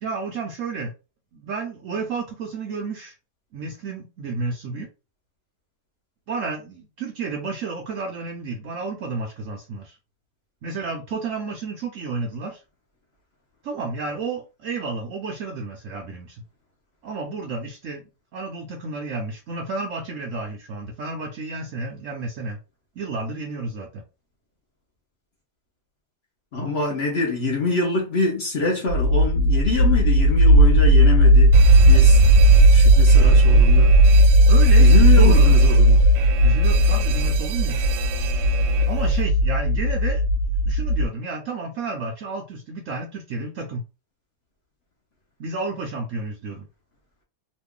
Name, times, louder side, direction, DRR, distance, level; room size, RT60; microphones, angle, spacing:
voice 1, 0.0-0.9 1.3-3.1 3.5-4.9 6.3-10.0 10.6-12.6 13.6-16.4 17.0-18.0 18.3-22.6 23.0-24.0 34.5-35.5 36.4-37.8 38.9-40.2 40.7-43.8 45.4-46.7, right 4 dB, 65° right, 0.8 m, -31 dB
voice 2, 26.5-31.6 31.8-32.2 32.7-33.9 34.8-36.1, left 3 dB, 50° left, 0.9 m, -25 dB
sound 1, 28.9-41.0, right 1 dB, 80° left, 1.3 m, -15 dB
Alarm, 31.5-39.2, right 8 dB, 90° right, 1.2 m, -27 dB
3.0 x 2.4 x 3.6 m
omnidirectional pair, 1.8 m